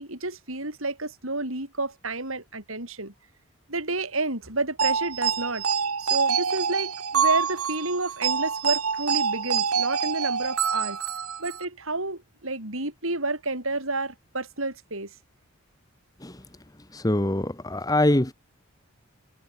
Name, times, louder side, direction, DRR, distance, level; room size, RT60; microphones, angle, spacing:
voice 1, 0.0-3.1 3.7-5.6 6.0-11.0 11.4-15.1, right 2 dB, 70° right, 6.7 m, -30 dB
sound 1, 4.8-11.7, right 6 dB, 90° right, 2.2 m, -26 dB
voice 2, 16.9-18.3, left 1 dB, 15° left, 1.2 m, -23 dB
head